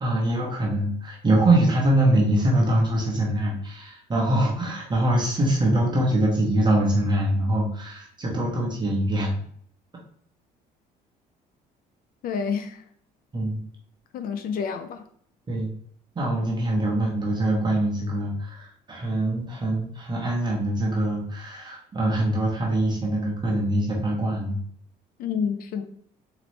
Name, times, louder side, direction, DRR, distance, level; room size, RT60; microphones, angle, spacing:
voice 1, 0.0-9.3 13.3-13.6 15.5-15.7 16.1-24.6, right 1 dB, 25° right, 1.0 m, -23 dB
voice 2, 12.2-12.8 14.1-15.0 25.2-25.8, left 6 dB, 60° left, 0.4 m, -28 dB
4.0 x 3.0 x 3.2 m
cardioid pair, 110°, 17 cm